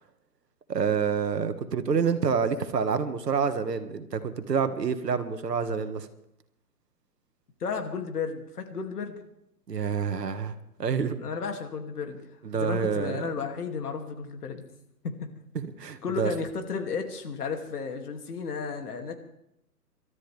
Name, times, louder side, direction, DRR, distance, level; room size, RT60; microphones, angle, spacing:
voice 1, 0.7-6.1 9.7-10.5 10.8-11.2 12.4-13.2 15.6-16.3, right 6 dB, 80° right, 10 dB, 1.8 m, -27 dB
voice 2, 7.6-9.2 11.2-14.7 15.0-15.3 16.0-19.1, left 5 dB, 65° left, 5 dB, 2.7 m, -33 dB
27.5 x 13.0 x 3.5 m, 0.82 s
hypercardioid pair, 145°, 48 cm